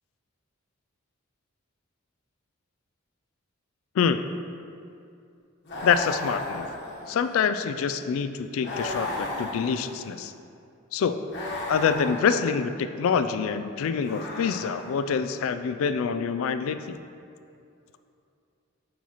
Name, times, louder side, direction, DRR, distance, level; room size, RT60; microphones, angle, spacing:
sound 1, 5.7-7.4 8.6-10.2 11.3-12.6 14.0-15.1, left 2 dB, 55° left, 1.2 m, -35 dB
voice 1, 5.8-6.7 7.1-10.3 10.9-11.2 11.7-17.0, left 6 dB, 75° left, 10 dB, 0.3 m, -26 dB
7.2 x 5.6 x 3.0 m, 2.5 s
head